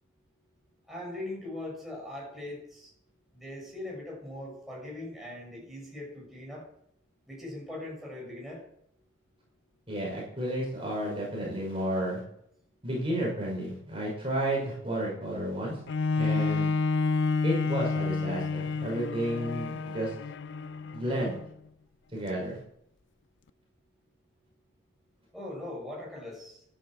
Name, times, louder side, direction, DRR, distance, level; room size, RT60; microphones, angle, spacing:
voice 1, 0.9-2.9 3.3-6.7 7.3-8.6 25.3-26.8, left 1 dB, ahead, -4 dB, 6.9 m, -40 dB
voice 2, 9.9-12.2 12.8-15.8 16.1-16.7 17.4-20.1 20.9-21.4 22.1-22.6, right 1 dB, 25° right, -3 dB, 6.0 m, -32 dB
Bowed string instrument, 15.9-21.5 22.1-22.2, left 4 dB, 55° left, 0.5 m, -29 dB
13.0 x 11.0 x 7.6 m, 0.71 s
head